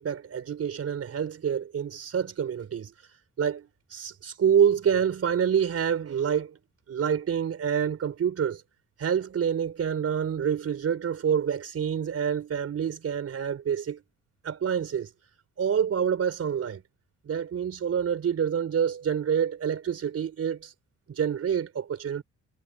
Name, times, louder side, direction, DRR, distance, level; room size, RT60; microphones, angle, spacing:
voice 1, 0.0-2.9 3.4-6.6 6.9-8.6 9.0-14.0 14.4-15.1 15.6-16.8 17.3-20.7 21.1-22.2, right 8 dB, 50° right, 4.2 m, -27 dB
cardioid pair, 90°, 30 cm